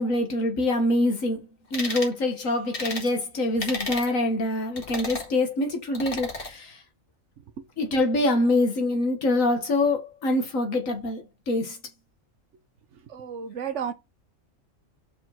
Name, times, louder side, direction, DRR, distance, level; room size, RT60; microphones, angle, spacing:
voice 1, 0.0-6.8 7.8-11.8, left 2 dB, 85° left, 2.0 m, -25 dB
sound 1, 1.7-2.1 2.7-3.1 3.6-4.1 4.8-5.3 5.9-6.5, left 2 dB, 45° left, 2.0 m, -33 dB
voice 2, 13.1-13.9, right 7 dB, 65° right, 1.1 m, -32 dB
5.5 x 4.9 x 5.9 m
omnidirectional pair, 1.4 m